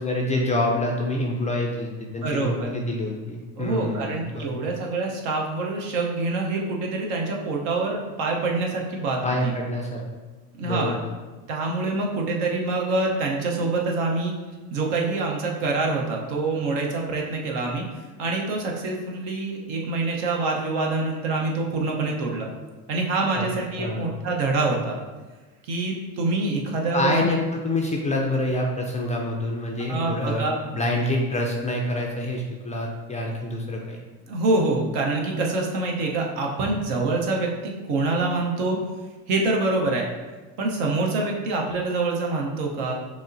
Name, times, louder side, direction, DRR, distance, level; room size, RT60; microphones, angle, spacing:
voice 1, 0.0-4.7 9.2-10.0 10.6-11.1 23.4-23.5 23.8-24.1 26.9-34.0, left 1 dB, 20° left, -1 dB, 0.3 m, -27 dB
voice 2, 2.2-2.7 3.6-9.5 10.6-11.0 11.5-14.3 14.7-17.8 18.2-22.5 22.9-25.0 25.6-27.3 29.9-30.6 34.3-38.8 39.3-40.1 40.6-42.9, right 3 dB, 70° right, 0 dB, 0.9 m, -25 dB
6.1 x 2.0 x 2.6 m, 1.3 s
supercardioid pair, 85°, 43 cm